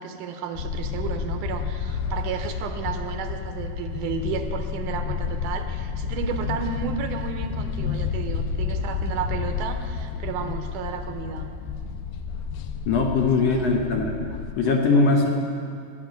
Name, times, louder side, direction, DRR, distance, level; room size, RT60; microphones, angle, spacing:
voice 1, 0.0-11.5 13.3-13.8 14.6-14.8, right 6 dB, 80° right, 7 dB, 2.2 m, -33 dB
sound 1, 0.5-14.5, left 6 dB, 85° left, 2.4 m, -30 dB
voice 2, 12.9-14.1 14.6-15.3, left 3 dB, 70° left, 2 dB, 1.6 m, -20 dB
16.0 x 5.9 x 9.3 m, 2.3 s
omnidirectional pair, 3.9 m